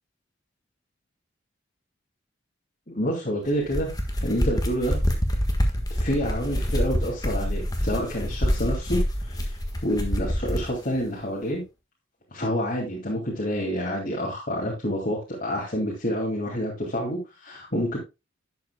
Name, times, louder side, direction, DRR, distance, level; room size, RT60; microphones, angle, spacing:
voice 1, 2.9-3.9 4.2-5.0 5.9-9.5 9.8-11.6 12.3-18.0, equal, 45° left, -4 dB, 2.5 m, -28 dB
sound 1, 3.5-10.7, equal, 20° left, 1.5 m, -26 dB
11.5 x 8.3 x 2.3 m, 0.25 s
head